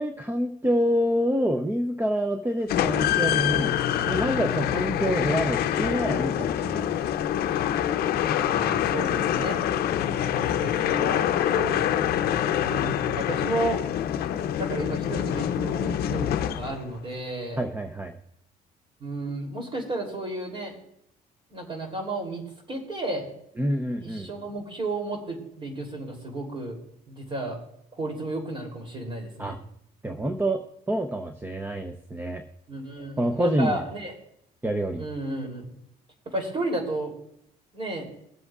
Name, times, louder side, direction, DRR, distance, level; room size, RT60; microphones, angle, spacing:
voice 1, 0.0-3.7 4.1-7.1 17.6-18.1 23.6-24.3 29.4-29.6 30.0-30.6 30.9-32.4 33.2-33.8 34.6-35.1, equal, 10° right, 5 dB, 0.7 m, -27 dB
sound 1, 2.7-17.0, left 10 dB, 65° left, 0.6 m, -25 dB
voice 2, 8.3-9.6 10.3-12.1 12.6-13.8 14.2-17.6 19.0-20.7 21.5-22.4 22.7-23.3 24.0-26.8 27.1-27.6 27.9-29.6 32.7-34.1 35.0-35.7 36.2-37.1 37.7-38.1, right 2 dB, 30° right, 2 dB, 3.2 m, -33 dB
23.0 x 7.8 x 2.4 m, 0.76 s
cardioid pair, 110°, 17 cm